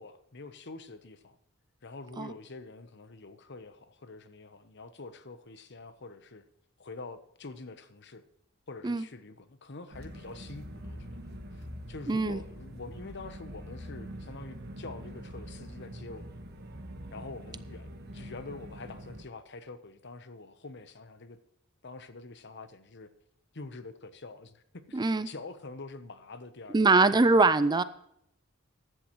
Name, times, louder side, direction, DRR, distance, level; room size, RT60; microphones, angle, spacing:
voice 1, 0.0-1.4 1.8-6.4 6.8-8.2 8.7-16.4 17.1-21.4 21.8-23.1 23.5-26.8, left 3 dB, 55° left, 1.0 m, -46 dB
sound 1, 9.9-19.2, equal, 50° right, 1.5 m, -44 dB
voice 2, 12.1-12.4 24.9-25.3 26.7-27.8, right 3 dB, 20° right, 0.4 m, -23 dB
15.0 x 11.0 x 3.1 m
head